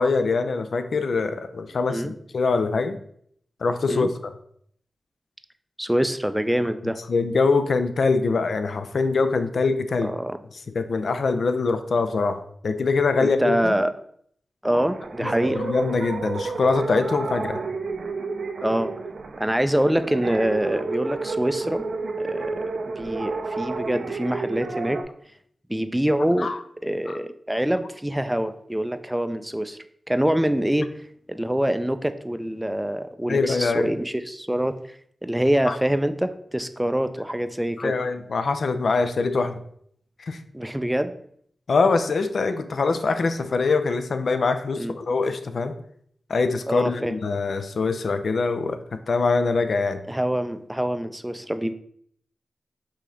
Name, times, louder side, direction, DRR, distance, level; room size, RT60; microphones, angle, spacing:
voice 1, 0.0-3.0 3.6-4.3 7.1-10.1 10.7-13.8 15.2-17.6 26.4-26.6 27.1-27.2 33.3-33.9 35.7-35.8 37.8-39.5 40.2-40.4 41.7-45.7 46.3-48.8 49.1-50.0, left 4 dB, 70° left, 9 dB, 0.4 m, -23 dB
voice 2, 5.8-7.0 10.0-10.4 13.2-13.9 14.6-15.6 18.6-18.9 19.4-21.8 22.2-25.0 25.7-26.5 26.8-29.8 30.1-30.9 31.3-34.8 35.2-37.9 40.5-41.2 44.8-44.9 46.7-47.2 50.1-51.7, right 1 dB, 10° right, 10 dB, 0.4 m, -25 dB
sound 1, 14.7-25.0, right 3 dB, 75° right, 0.5 m, -30 dB
5.0 x 2.8 x 3.6 m, 0.66 s
cardioid pair, 65°, 0 cm